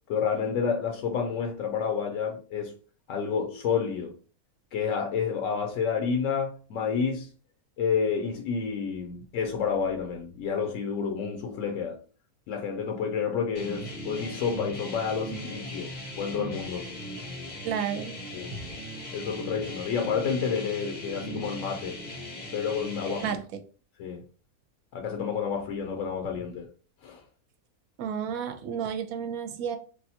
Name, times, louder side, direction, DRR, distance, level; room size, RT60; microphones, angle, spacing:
voice 1, 0.1-2.7 3.1-4.1 4.7-7.3 7.8-12.0 12.5-16.9 18.3-18.6 19.1-22.0 22.5-23.4 24.0-24.2 24.9-26.7 27.0-27.2, left 6 dB, 70° left, 0.9 m, -29 dB
sound 1, 13.5-23.3, equal, 40° left, 0.7 m, -39 dB
voice 2, 17.6-18.2 23.1-23.4 28.0-29.8, right 8 dB, 75° right, 1.0 m, -31 dB
3.4 x 2.3 x 2.8 m
omnidirectional pair, 1.6 m